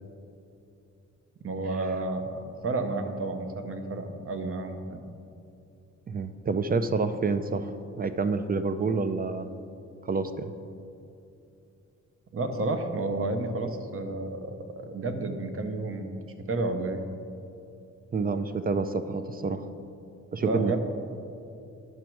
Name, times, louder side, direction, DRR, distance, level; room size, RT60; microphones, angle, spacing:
voice 1, 1.4-5.0 12.3-16.1 16.5-17.1 20.4-20.8, right 2 dB, 45° right, 7 dB, 0.9 m, -31 dB
voice 2, 6.1-9.5 10.0-10.5 18.1-19.7 20.3-20.8, right 4 dB, 30° right, 10 dB, 0.4 m, -28 dB
10.5 x 6.1 x 4.6 m, 2.6 s
cardioid pair, 95°, 30 cm